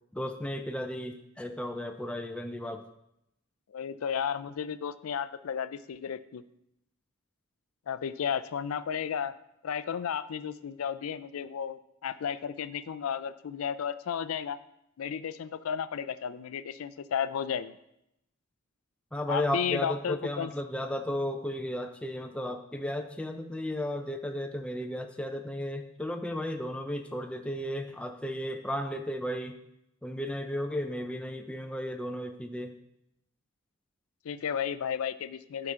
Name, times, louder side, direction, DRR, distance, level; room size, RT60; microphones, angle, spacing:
voice 1, 0.1-2.8 19.1-29.5 30.0-32.7, left 1 dB, 5° left, 5 dB, 0.4 m, -34 dB
voice 2, 3.7-6.4 7.9-9.3 9.6-14.6 15.0-17.8 19.3-20.5 34.2-35.7, left 7 dB, 85° left, 14 dB, 0.4 m, -33 dB
9.5 x 5.8 x 3.7 m, 0.82 s
head